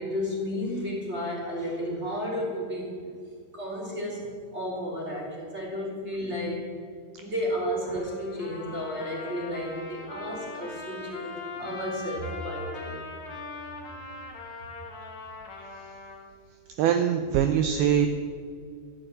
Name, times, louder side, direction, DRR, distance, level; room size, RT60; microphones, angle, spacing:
voice 1, 0.0-3.1 3.5-6.6 7.2-13.0, equal, 20° right, -4 dB, 2.6 m, -32 dB
Trumpet, 7.8-16.3, left 3 dB, 60° left, 1.4 m, -41 dB
voice 2, 16.8-18.1, right 9 dB, 90° right, 7 dB, 2.2 m, -22 dB
13.5 x 8.2 x 9.0 m, 2.1 s
omnidirectional pair, 5.3 m